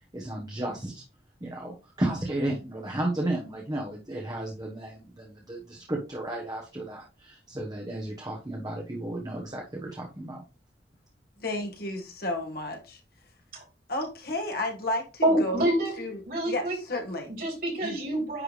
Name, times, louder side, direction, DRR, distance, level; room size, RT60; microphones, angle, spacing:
voice 1, 0.1-1.0 1.4-10.4, right 1 dB, 20° right, -1 dB, 1.2 m, -33 dB
voice 2, 11.4-13.0 13.9-15.7 16.0-17.3 17.8-18.0, left 1 dB, 55° left, 2 dB, 1.7 m, -32 dB
voice 3, 15.2-15.9 16.3-16.7 17.3-18.4, right 1 dB, 55° right, -1 dB, 3.3 m, -26 dB
9.9 x 3.6 x 3.3 m, 0.31 s
head